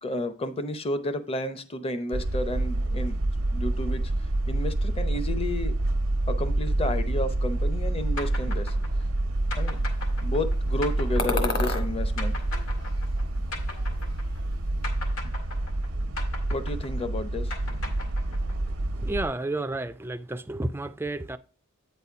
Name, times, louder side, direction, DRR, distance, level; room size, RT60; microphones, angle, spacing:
voice 1, 0.0-3.2 3.5-4.0 4.5-5.7 6.3-8.8 9.5-9.8 10.2-12.4 16.5-17.9, left 1 dB, 25° left, 0.6 m, -32 dB
sound 1, 2.1-19.3, right 1 dB, 90° right, 0.7 m, -27 dB
sound 2, 8.2-14.5 14.8-18.7, left 3 dB, 70° left, 1.9 m, -39 dB
sound 3, 11.2-11.9 12.4-13.4 13.7-14.5, left 3 dB, 45° left, 1.4 m, -33 dB
voice 2, 18.9-21.4, right 2 dB, 10° right, 0.3 m, -31 dB
8.8 x 4.2 x 4.7 m
head